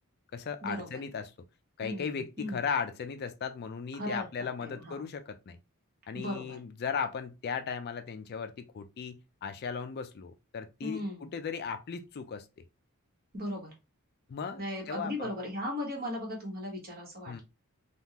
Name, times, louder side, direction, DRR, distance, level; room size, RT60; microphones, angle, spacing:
voice 1, 0.3-1.3 1.8-5.6 6.1-12.5 14.3-15.3 17.3-17.4, left 6 dB, 45° left, 0.4 m, -37 dB
voice 2, 1.8-2.6 4.0-5.1 6.1-6.6 10.8-11.3 13.3-13.7 14.6-17.4, left 1 dB, 45° right, 1.3 m, -37 dB
3.5 x 2.3 x 2.8 m
head